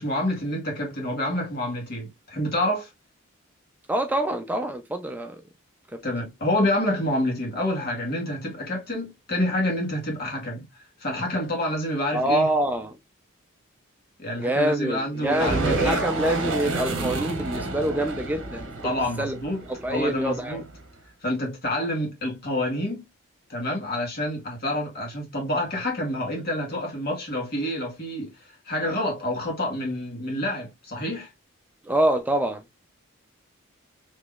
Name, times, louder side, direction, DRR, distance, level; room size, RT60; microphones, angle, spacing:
voice 1, 0.0-2.9 6.0-10.6 11.0-12.5 14.2-16.0 18.8-19.6 19.9-20.6 21.2-23.0 23.5-28.3 28.6-31.3, left 1 dB, 45° left, 1.5 m, -28 dB
voice 2, 3.9-5.4 5.9-6.0 12.1-13.0 14.4-18.9 19.2-19.4 19.7-20.6 31.8-32.6, right 1 dB, 10° right, 0.4 m, -26 dB
sound 1, 15.2-20.8, right 2 dB, 55° right, 0.9 m, -30 dB
3.6 x 3.1 x 2.3 m
head